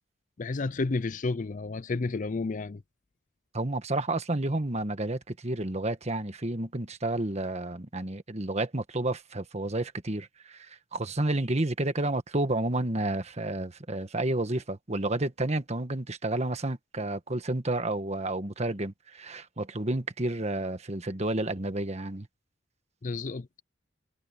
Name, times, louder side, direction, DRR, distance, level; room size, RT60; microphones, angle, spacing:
voice 1, 0.4-2.8 23.0-23.5, left 3 dB, 45° left, 0.5 m, -31 dB
voice 2, 3.5-22.3, right 2 dB, 35° right, 1.5 m, -30 dB
head